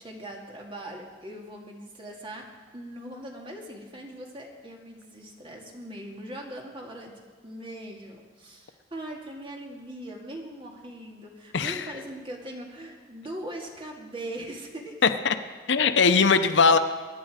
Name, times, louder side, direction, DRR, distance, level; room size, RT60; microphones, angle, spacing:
voice 1, 0.0-2.5 2.7-14.9, right 1 dB, 30° right, 0 dB, 2.2 m, -40 dB
voice 2, 11.5-11.8 15.0-15.3 15.7-16.8, left 5 dB, 75° left, 10 dB, 0.7 m, -20 dB
22.5 x 9.9 x 4.9 m, 1.5 s
head